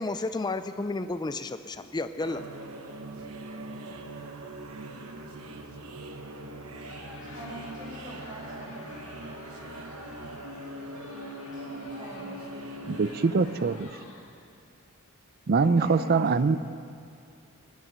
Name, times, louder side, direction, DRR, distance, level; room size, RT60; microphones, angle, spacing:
voice 1, 0.0-2.4, left 2 dB, 20° left, 11 dB, 0.4 m, -32 dB
sound 1, 2.2-13.8, right 1 dB, 85° right, 1.2 m, -41 dB
Crowd, 6.8-14.5, left 3 dB, 65° left, 1.8 m, -49 dB
voice 2, 7.2-8.9 11.5-12.9 15.6-16.6, right 1 dB, 20° right, -4 dB, 4.5 m, -43 dB
voice 3, 12.9-13.9 15.5-16.6, right 4 dB, 45° right, 14 dB, 0.5 m, -23 dB
21.0 x 9.3 x 6.2 m, 2.4 s
head